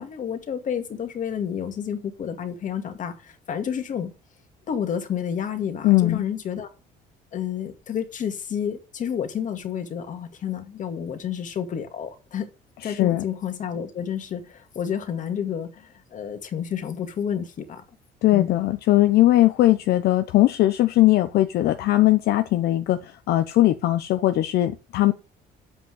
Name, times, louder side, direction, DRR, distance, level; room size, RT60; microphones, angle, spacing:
voice 1, 0.0-4.1 4.7-6.7 7.3-12.5 12.8-17.8 18.3-18.6, left 8 dB, 50° left, 2.2 m, -30 dB
voice 2, 5.8-6.2 12.8-13.2 18.2-25.1, left 15 dB, 75° left, 0.8 m, -19 dB
8.0 x 5.8 x 7.6 m
cardioid pair, 110°, 17 cm